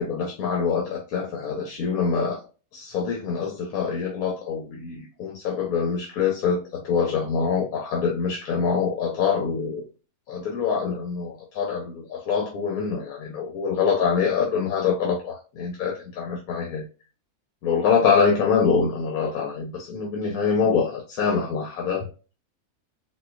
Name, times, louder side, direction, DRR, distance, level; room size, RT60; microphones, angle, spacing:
voice 1, 0.0-2.4 2.7-9.9 10.3-16.8 17.6-22.1, left 6 dB, 75° left, 1.2 m, -25 dB
4.1 x 2.3 x 2.3 m
omnidirectional pair, 1.6 m